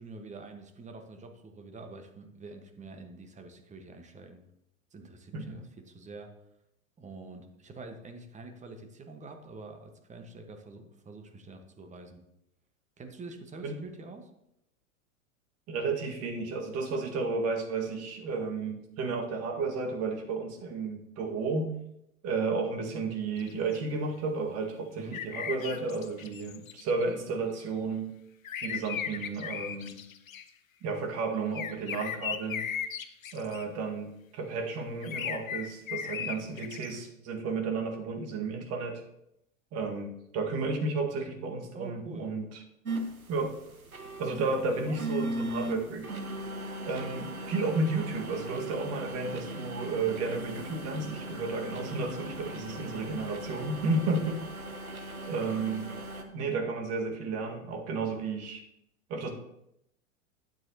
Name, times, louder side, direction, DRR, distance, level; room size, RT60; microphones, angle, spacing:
voice 1, 0.0-4.4 4.9-6.3 7.0-12.2 13.0-14.3 25.0-25.3 41.7-42.3 44.2-45.0 54.1-54.3, right 3 dB, 15° right, 5 dB, 1.4 m, -46 dB
voice 2, 15.7-21.7 22.2-28.1 28.6-29.9 30.8-32.7 33.3-34.1 34.3-39.0 39.7-42.6 43.3-43.6 44.2-46.1 46.9-54.4 55.3-55.9 56.3-58.6 59.1-59.3, right 3 dB, 35° right, 2 dB, 1.9 m, -32 dB
sound 1, 23.4-23.8 25.1-27.0 28.4-30.4 31.5-33.6 35.0-36.9, left 8 dB, 75° left, 0.8 m, -37 dB
sound 2, 42.8-56.2, right 1 dB, 90° right, 1.1 m, -38 dB
12.5 x 9.3 x 2.9 m, 0.80 s
figure-of-eight pair, 90°, 41 cm